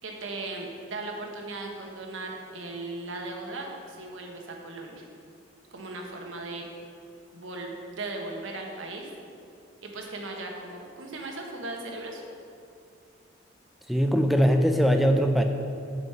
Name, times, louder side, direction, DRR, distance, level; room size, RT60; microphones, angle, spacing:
voice 1, 0.0-5.1 5.7-6.7 7.3-9.1 9.8-12.2, right 2 dB, 80° right, 1 dB, 1.2 m, -37 dB
voice 2, 13.9-15.4, equal, ahead, 5 dB, 0.4 m, -21 dB
7.9 x 5.2 x 5.7 m, 2.4 s
head